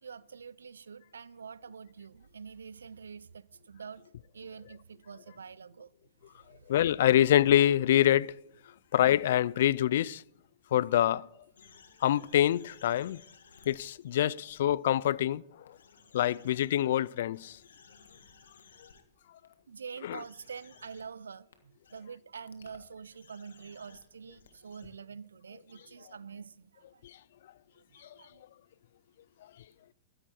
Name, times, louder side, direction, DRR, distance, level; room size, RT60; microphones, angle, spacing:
voice 1, 0.0-4.0 4.3-5.9 6.5-6.6 19.7-27.0 27.8-28.4, right 6 dB, 85° right, 0.4 m, -46 dB
voice 2, 6.7-8.3 8.9-10.2 10.7-11.3 12.0-13.2 13.7-15.4 16.1-17.6 20.0-20.2, left 12 dB, 65° left, 0.3 m, -25 dB
sound 1, 11.6-14.5 15.0-15.1 15.7-16.8 17.1-19.0 19.4-19.5 20.1-21.0 21.5-21.6 21.8-22.0 22.4-24.9, left 6 dB, 80° left, 1.5 m, -58 dB
13.0 x 11.0 x 4.4 m
hypercardioid pair, 115°, 0 cm